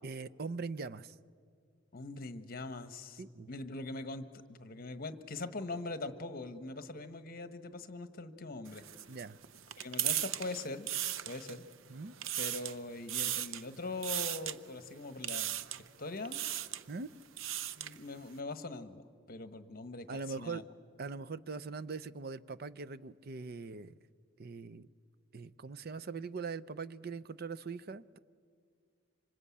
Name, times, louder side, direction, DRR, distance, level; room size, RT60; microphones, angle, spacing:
voice 1, 0.0-1.2 3.2-3.5 9.1-9.4 11.9-12.1 16.9-17.1 20.1-20.6 21.0-23.9 24.4-24.9 25.3-28.2, right 4 dB, 50° right, 16 dB, 0.6 m, -41 dB
voice 2, 1.9-3.2 3.5-8.8 9.8-10.9 11.2-11.6 12.4-15.6 16.0-16.4 17.8-20.6, left 2 dB, 50° left, 10 dB, 1.3 m, -42 dB
sound 1, 8.7-11.7 12.1-12.8 13.1-13.7 14.0-14.6 15.2-15.9 16.2-16.8 17.2-18.0, right 12 dB, 85° right, 0.7 m, -36 dB
26.0 x 25.5 x 8.5 m, 2.2 s
head